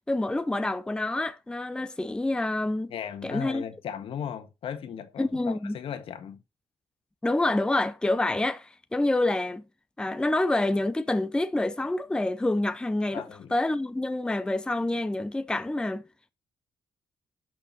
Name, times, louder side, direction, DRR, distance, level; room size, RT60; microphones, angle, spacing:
voice 1, 0.0-2.9 3.2-3.6 5.2-5.8 7.2-9.6 10.0-13.2 13.5-16.0, left 2 dB, 10° left, 0.6 m, -27 dB
voice 2, 2.9-6.4 13.1-13.5, left 8 dB, 70° left, 1.5 m, -37 dB
12.0 x 6.1 x 4.1 m
cardioid pair, 130°, 10 cm